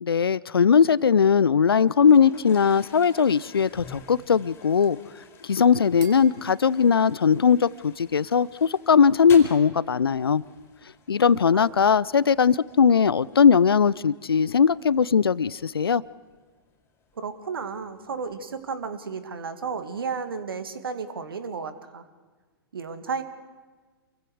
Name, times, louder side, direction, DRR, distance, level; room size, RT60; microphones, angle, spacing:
voice 1, 0.0-5.0 5.4-10.4 11.1-16.0, left 6 dB, 75° left, 21 dB, 0.6 m, -19 dB
Toilet flush, 1.7-18.7, left 4 dB, 20° left, 4.5 m, -51 dB
sound 1, 3.8-8.6, right 8 dB, 35° right, 2.7 m, -54 dB
voice 2, 17.2-22.0 22.7-23.2, right 5 dB, 70° right, 10 dB, 2.2 m, -33 dB
28.5 x 23.5 x 4.9 m, 1.4 s
figure-of-eight pair, 110°, 13 cm